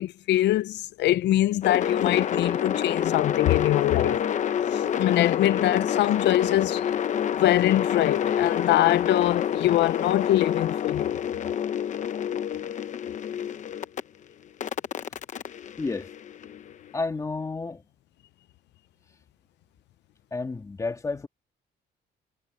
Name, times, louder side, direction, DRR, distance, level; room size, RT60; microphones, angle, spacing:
voice 1, 0.0-4.2 4.7-6.8 7.4-11.1, left 14 dB, 85° left, 0.6 m, -23 dB
sound 1, 1.6-14.0 14.6-16.7, left 9 dB, 45° left, 0.8 m, -28 dB
voice 2, 15.8-16.1 16.9-17.8 20.3-21.3, left 3 dB, 20° left, 2.3 m, -31 dB
cardioid pair, 155°, 17 cm